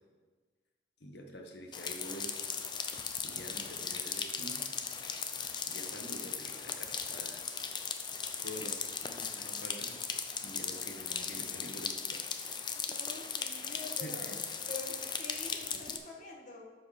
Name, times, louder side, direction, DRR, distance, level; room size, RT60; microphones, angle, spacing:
voice 1, 1.0-2.5 3.2-4.8 5.7-7.5 8.4-10.0 10.4-12.2 13.6-14.4, equal, 65° left, 2 dB, 1.3 m, -47 dB
sound 1, 1.7-16.0, left 6 dB, 25° left, 0.5 m, -38 dB
voice 2, 12.7-14.4 14.7-16.7, left 3 dB, 40° left, -2 dB, 1.6 m, -46 dB
13.0 x 4.6 x 4.9 m, 1.4 s
head